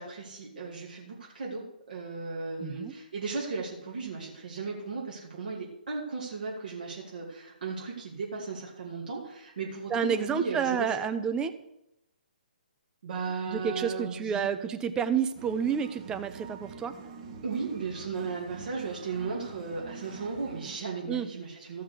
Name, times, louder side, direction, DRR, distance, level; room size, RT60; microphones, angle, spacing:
voice 1, 0.0-11.0 13.0-14.5 17.4-21.8, right 4 dB, 60° right, -3 dB, 2.8 m, -36 dB
voice 2, 2.6-2.9 9.9-11.5 13.5-17.0 21.1-21.3, right 7 dB, 15° right, 9 dB, 0.7 m, -29 dB
sound 1, 15.3-20.8, right 5 dB, 40° right, 1.6 m, -46 dB
14.5 x 5.8 x 6.6 m, 0.86 s
figure-of-eight pair, 135°, 5 cm